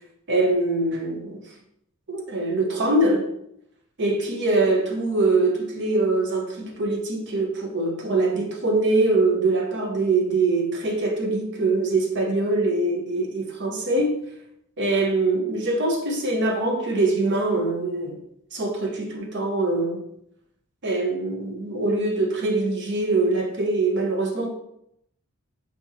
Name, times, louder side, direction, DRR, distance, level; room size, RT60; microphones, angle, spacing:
voice 1, 0.3-1.4 2.1-3.3 4.0-14.2 14.8-18.2 18.5-20.0 20.8-24.5, right 2 dB, 55° right, 0.9 m, -23 dB
4.4 x 2.9 x 4.1 m
head